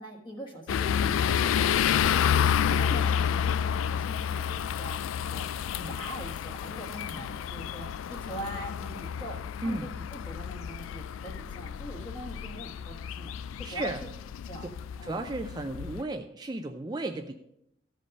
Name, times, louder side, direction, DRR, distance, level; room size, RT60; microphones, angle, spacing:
voice 1, 0.0-5.5 5.8-13.3 13.6-14.1 14.4-14.7 15.0-15.3, right 1 dB, 25° left, 2 dB, 1.4 m, -43 dB
sound 1, 0.7-16.0, left 8 dB, 90° left, 0.3 m, -30 dB
voice 2, 13.6-14.0 14.6-14.7 15.0-17.3, right 2 dB, 20° right, 6 dB, 0.4 m, -34 dB
14.0 x 5.3 x 5.2 m, 0.81 s
head